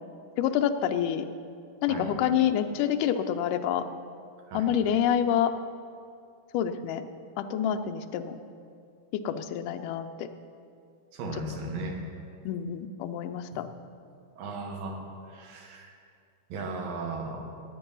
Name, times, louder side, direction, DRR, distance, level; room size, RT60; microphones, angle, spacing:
voice 1, 0.4-1.3 1.8-3.8 4.5-5.5 6.5-7.0 7.4-8.4 9.1-10.3 12.5-13.7, left 9 dB, 80° left, 7 dB, 2.1 m, -27 dB
voice 2, 11.1-12.0 13.5-13.6 14.4-15.9 16.5-17.5, right 3 dB, 80° right, 2 dB, 3.2 m, -36 dB
18.0 x 8.7 x 5.5 m, 2.4 s
omnidirectional pair, 4.0 m